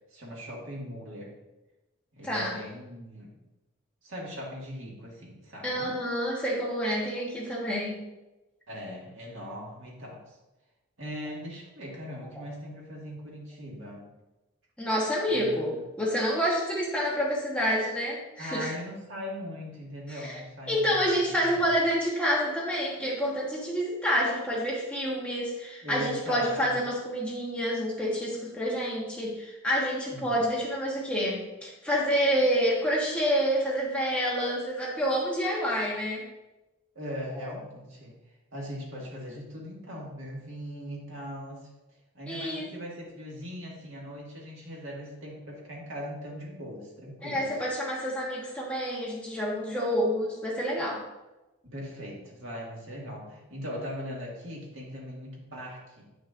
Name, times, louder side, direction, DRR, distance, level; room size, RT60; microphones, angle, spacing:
voice 1, 0.1-1.4 2.1-3.4 4.0-5.9 8.7-10.4 11.0-14.1 15.3-15.8 18.4-21.0 21.3-21.7 25.8-26.8 30.1-30.4 37.0-38.1 38.5-41.7 42.1-47.5 51.6-56.1, equal, 65° right, -3 dB, 1.9 m, -40 dB
voice 2, 2.2-2.6 5.6-8.0 14.8-18.7 20.1-20.4 20.7-36.3 37.4-37.5 42.3-42.7 47.2-51.0, equal, 5° left, -4 dB, 1.1 m, -28 dB
9.1 x 6.1 x 2.5 m, 1.0 s
head